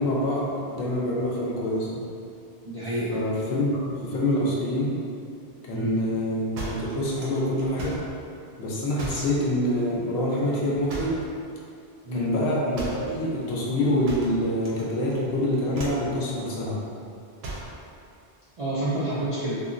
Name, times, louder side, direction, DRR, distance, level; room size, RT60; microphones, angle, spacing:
voice 1, 0.0-2.0 3.1-4.9 5.6-8.0 8.6-11.2 12.1-16.8, left 1 dB, 80° left, -4 dB, 0.9 m, -26 dB
voice 2, 2.6-3.1 5.7-5.9 12.0-12.3 18.6-19.6, right 1 dB, 50° right, -10 dB, 0.4 m, -29 dB
sound 1, 6.6-8.1 9.0-9.3 10.9-11.3 12.7-13.1 14.1-14.8 15.1-15.4 15.7-16.1 17.4-17.8, right 2 dB, 80° right, 0.8 m, -36 dB
2.9 x 2.4 x 2.5 m, 2.5 s
omnidirectional pair, 1.1 m